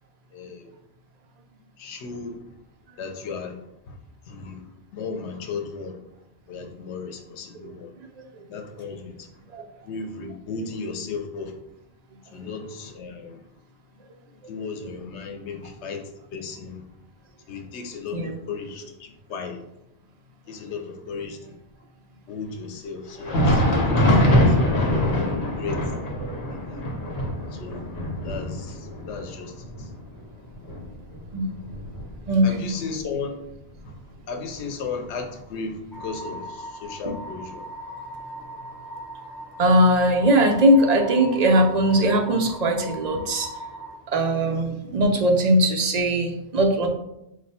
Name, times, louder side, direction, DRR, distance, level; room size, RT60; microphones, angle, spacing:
voice 1, 0.3-0.7 1.8-2.4 3.0-3.6 3.9-4.0 4.3-4.6 4.9-6.0 6.5-7.9 8.5-9.3 9.8-11.5 12.3-13.4 14.5-16.0 16.3-16.8 17.5-19.6 20.5-21.6 22.3-24.6 25.1-25.9 26.5-26.8 27.5-27.8 28.2-29.9 32.4-33.4 33.8-33.9 34.3-37.6, left 5 dB, 90° left, 5 dB, 0.9 m, -35 dB
Thunder, 23.1-32.5 32.9-33.1 33.7-33.9 34.9-35.0, left 1 dB, 65° left, 1.1 m, -24 dB
voice 2, 25.0-25.3 26.2-26.4 31.3-31.5 32.3-32.7 37.0-37.2 39.6-43.5 44.1-46.9, right 1 dB, 50° right, 3 dB, 0.5 m, -20 dB
sound 1, 35.9-44.0, right 1 dB, 35° left, 0.4 m, -38 dB
4.6 x 2.2 x 4.2 m, 0.86 s
omnidirectional pair, 1.1 m